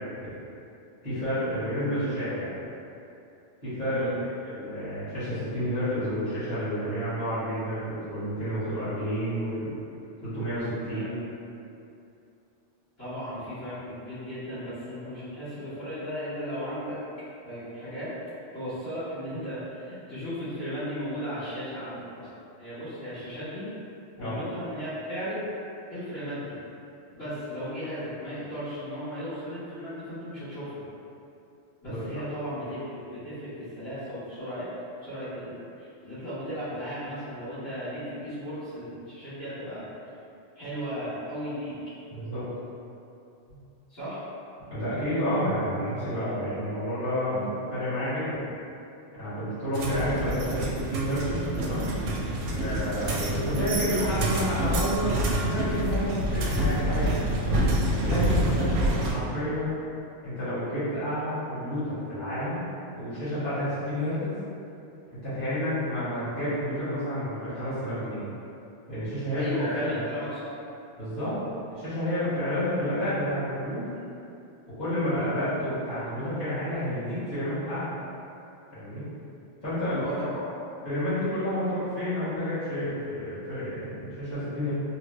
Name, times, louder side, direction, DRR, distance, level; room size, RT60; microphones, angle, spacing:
voice 1, 1.0-2.5 3.6-4.1 4.4-9.7 10.2-11.1 24.2-24.4 31.8-32.0 42.1-42.5 44.7-48.4 49.1-50.6 50.9-51.9 52.6-57.3 58.0-59.7 60.2-62.6 62.9-64.3 65.2-68.3 68.9-70.0 71.0-71.4 71.7-73.9 74.8-77.9 78.7-79.0 79.6-80.1 80.8-84.7, equal, 40° left, -16 dB, 1.6 m, -30 dB
voice 2, 13.0-17.0 17.4-18.1 18.5-22.3 22.6-23.7 24.2-25.4 25.9-26.5 27.1-30.8 31.8-34.7 35.0-40.1 40.5-41.8 43.9-44.2 69.3-70.5 80.0-80.4, equal, 60° left, -17 dB, 1.7 m, -36 dB
sound 1, 49.7-59.1, right 1 dB, 85° right, 0.9 m, -27 dB
3.5 x 2.0 x 3.2 m, 2.7 s
omnidirectional pair, 1.2 m